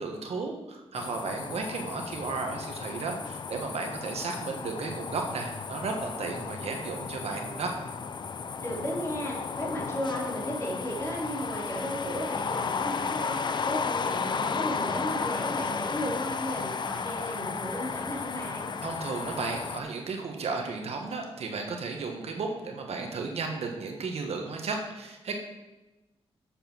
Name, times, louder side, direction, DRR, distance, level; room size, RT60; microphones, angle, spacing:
voice 1, 0.0-7.7 18.8-25.3, right 4 dB, 75° right, 2 dB, 1.3 m, -34 dB
sound 1, 0.9-19.8, left 5 dB, 45° left, 0.5 m, -34 dB
voice 2, 8.6-18.7, equal, 25° left, -3 dB, 3.0 m, -34 dB
7.3 x 6.8 x 5.8 m, 1.1 s
cardioid pair, 90°, 11 cm